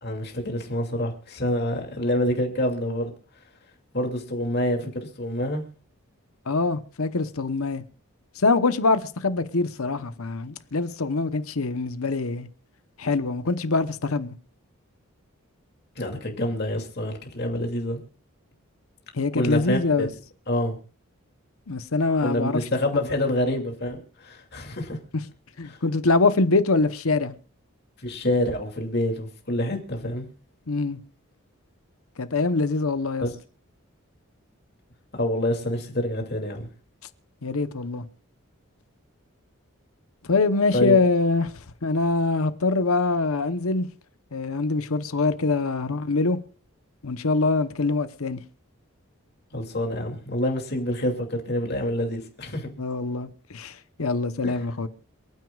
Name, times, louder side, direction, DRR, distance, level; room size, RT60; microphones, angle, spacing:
voice 1, 0.0-3.1 3.9-5.6 16.0-18.0 19.3-20.1 20.5-20.8 22.2-25.0 25.7-25.8 28.0-30.3 33.2-33.4 35.1-36.7 40.7-41.0 49.5-52.7 54.4-54.6, left 1 dB, 45° left, 2.6 m, -27 dB
voice 2, 6.5-7.8 8.4-12.5 13.0-14.4 19.1-20.1 21.7-22.6 22.9-23.1 25.6-27.3 30.7-31.0 32.2-33.3 37.4-38.0 40.3-41.5 41.8-43.9 44.3-46.4 47.0-48.4 52.8-54.9, left 3 dB, 75° left, 1.0 m, -24 dB
28.0 x 9.5 x 2.4 m
head